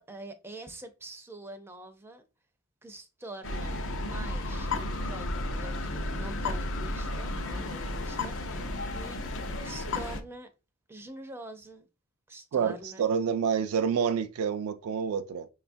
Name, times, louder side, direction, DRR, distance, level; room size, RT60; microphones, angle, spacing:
voice 1, 0.0-2.2 2.8-9.2 9.6-10.5 10.9-11.9 12.3-13.1, right 1 dB, 10° right, 0.4 m, -45 dB
sound 1, 3.4-10.2, left 2 dB, 55° left, 0.5 m, -33 dB
voice 2, 12.5-15.5, right 7 dB, 80° right, 0.3 m, -28 dB
5.6 x 2.3 x 2.6 m
head